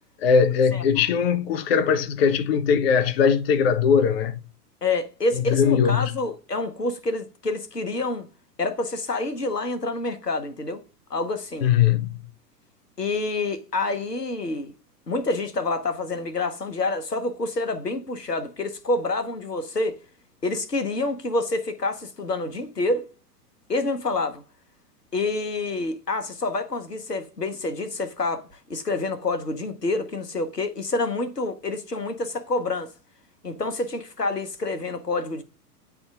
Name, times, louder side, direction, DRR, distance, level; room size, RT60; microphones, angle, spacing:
voice 1, 0.2-4.4 5.3-6.1 11.6-12.2, left 7 dB, 40° left, 0.6 m, -20 dB
voice 2, 4.8-8.3 8.6-10.8 11.1-11.7 13.0-14.7 15.1-20.0 20.4-23.0 23.7-24.4 25.1-32.9 33.4-35.4, left 2 dB, 90° left, 1.0 m, -27 dB
9.3 x 3.5 x 3.6 m
figure-of-eight pair, 100°, 46 cm